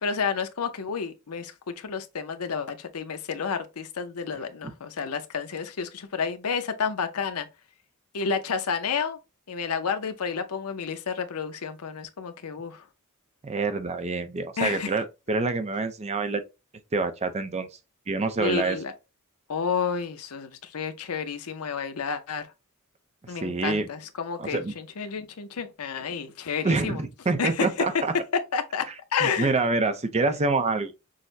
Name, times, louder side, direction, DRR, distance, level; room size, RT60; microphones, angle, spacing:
voice 1, 0.0-7.5 8.1-9.2 9.5-12.8 14.6-14.9 18.4-18.9 19.5-22.5 23.3-27.0 27.4-27.7 28.5-29.5, left 6 dB, 90° left, 0.7 m, -30 dB
voice 2, 13.4-16.4 16.9-17.7 18.1-18.8 23.3-23.9 24.4-24.7 26.6-28.2 28.9-29.0 29.2-30.9, right 3 dB, 30° right, 0.5 m, -26 dB
6.3 x 2.1 x 2.7 m
head